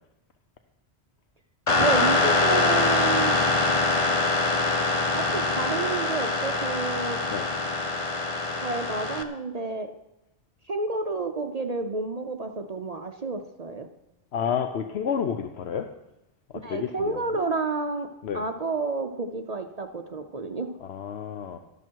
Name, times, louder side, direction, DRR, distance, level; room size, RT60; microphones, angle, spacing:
sound 1, 1.7-9.2, left 3 dB, 30° left, 1.0 m, -24 dB
voice 1, 1.8-3.4 5.1-7.2 8.5-9.9 10.6-13.9 16.5-18.1 18.3-20.7, right 3 dB, 40° right, 6 dB, 0.7 m, -30 dB
voice 2, 14.3-15.9 16.7-17.2 18.2-18.4 20.8-21.6, left 7 dB, 80° left, 7 dB, 1.0 m, -30 dB
13.5 x 12.5 x 4.6 m, 0.93 s
omnidirectional pair, 1.1 m